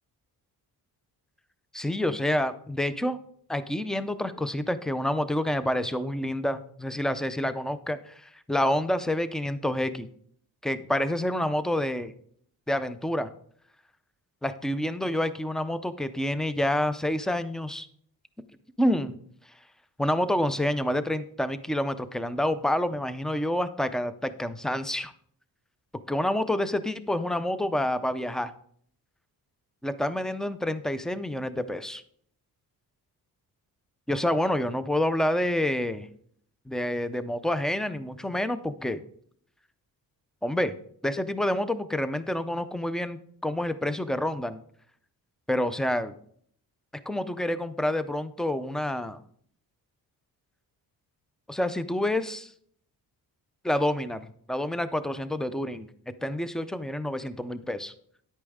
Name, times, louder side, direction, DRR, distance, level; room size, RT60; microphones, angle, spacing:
voice 1, 1.7-3.2 3.5-10.1 10.6-12.1 12.7-13.3 14.4-17.9 18.8-19.2 20.0-25.1 26.1-28.5 29.8-32.0 34.1-36.1 36.7-39.0 40.4-40.7 41.0-44.6 45.5-46.2 47.1-49.2 51.5-52.5 53.6-55.9 56.2-57.9, left 1 dB, ahead, 13 dB, 0.3 m, -28 dB
10.5 x 8.5 x 3.5 m, 0.62 s
wide cardioid pair, 165°, 37 cm